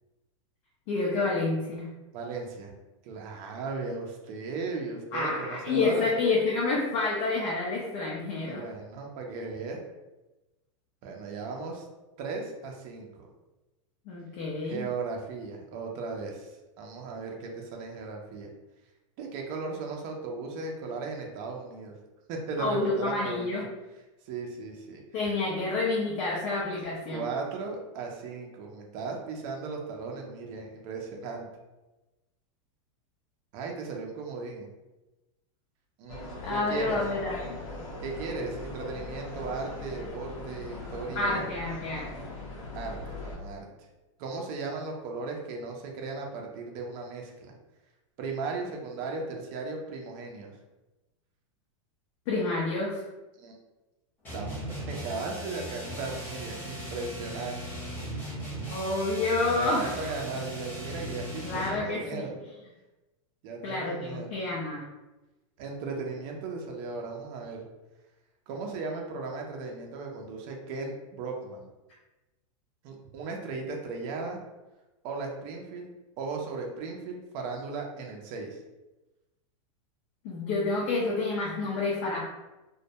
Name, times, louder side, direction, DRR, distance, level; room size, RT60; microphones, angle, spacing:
voice 1, 0.9-1.9 5.1-8.6 14.1-14.9 22.6-23.6 25.1-27.2 36.4-37.6 41.1-42.1 52.3-53.0 58.7-59.9 61.4-62.3 63.6-64.8 80.2-82.2, left 3 dB, 50° left, -5 dB, 0.6 m, -29 dB
voice 2, 2.1-2.7 3.0-6.1 8.5-9.8 11.0-11.8 12.2-13.3 14.7-18.5 19.2-21.9 22.3-23.5 24.2-25.0 27.1-31.5 33.5-34.7 36.0-37.0 38.0-41.4 42.7-43.9 44.2-47.5 48.2-50.5 53.4-53.6 54.3-57.8 58.1-58.2 59.5-62.3 63.4-64.3 65.6-67.6 68.5-71.7 72.8-74.4 75.0-78.6, right 4 dB, 40° right, 1 dB, 0.5 m, -36 dB
sound 1, 36.1-43.4, left 2 dB, 80° left, 0.8 m, -40 dB
sound 2, 54.2-61.9, equal, 10° left, 0.7 m, -38 dB
2.2 x 2.1 x 2.7 m, 1.0 s
supercardioid pair, 145°, 17 cm